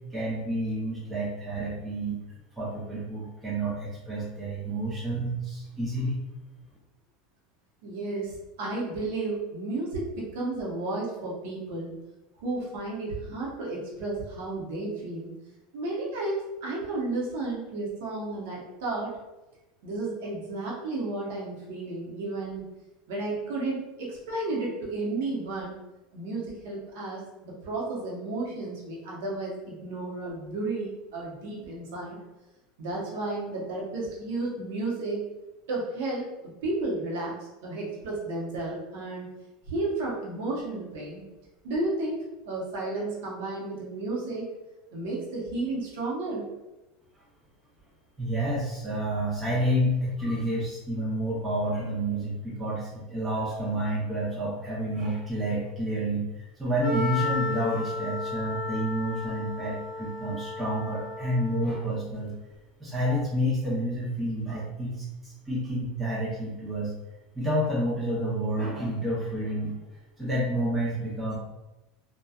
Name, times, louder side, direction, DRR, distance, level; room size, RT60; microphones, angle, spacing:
voice 1, 0.1-2.2 2.6-6.2 48.2-62.3 62.8-66.9 67.3-69.7 70.2-71.4, right 1 dB, 10° right, -7 dB, 0.6 m, -29 dB
voice 2, 7.8-11.9 12.4-15.3 15.7-19.1 19.8-22.6 23.1-25.8 26.1-32.2 32.8-35.2 35.7-36.3 36.6-37.3 37.6-39.3 39.7-41.2 41.6-42.2 42.4-44.5 44.9-46.4, right 2 dB, 80° right, -4 dB, 0.9 m, -32 dB
Wind instrument woodwind instrument, 56.8-61.9, left 3 dB, 40° left, 0.7 m, -34 dB
2.8 x 2.2 x 2.3 m, 1.0 s
supercardioid pair, 145°, 0 cm